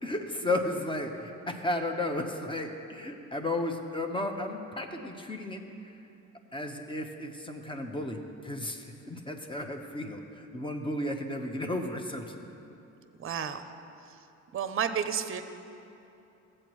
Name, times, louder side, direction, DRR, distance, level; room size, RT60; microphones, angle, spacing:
voice 1, 0.0-5.6 6.5-8.2 8.4-12.2, left 1 dB, 15° left, 4 dB, 0.8 m, -33 dB
voice 2, 13.2-13.6 14.5-15.4, right 7 dB, 45° right, 10 dB, 0.6 m, -31 dB
15.0 x 7.6 x 3.1 m, 2.8 s
cardioid pair, 90°, 30 cm